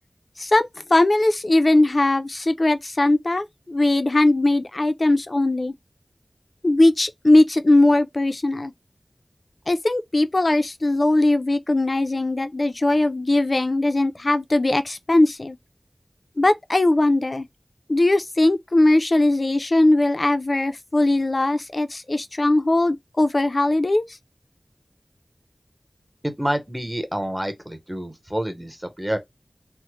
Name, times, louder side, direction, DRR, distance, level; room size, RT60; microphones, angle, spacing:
voice 1, 0.4-5.7 6.6-8.7 9.7-15.6 16.4-17.5 17.9-24.0, left 2 dB, 50° left, 0.4 m, -19 dB
voice 2, 26.2-29.2, equal, 10° right, 0.8 m, -28 dB
3.1 x 2.0 x 2.9 m
wide cardioid pair, 65°, 0 cm